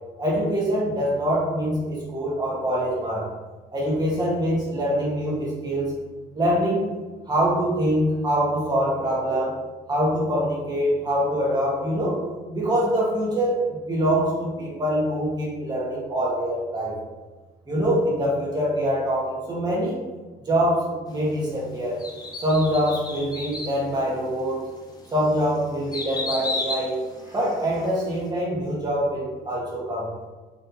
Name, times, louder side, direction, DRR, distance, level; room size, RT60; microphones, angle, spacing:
voice 1, 0.2-3.3 3.7-5.9 6.3-6.8 7.3-9.5 9.9-12.2 12.5-16.9 17.7-20.0 20.4-21.9 22.4-24.6 25.1-27.0 27.2-30.1, equal, 25° right, -5 dB, 1.5 m, -24 dB
sound 1, 22.0-23.8 24.4-24.5 25.0-27.9 28.2-28.3, left 2 dB, 25° left, 0.7 m, -32 dB
4.2 x 3.2 x 2.8 m, 1.3 s
cardioid pair, 110°, 17 cm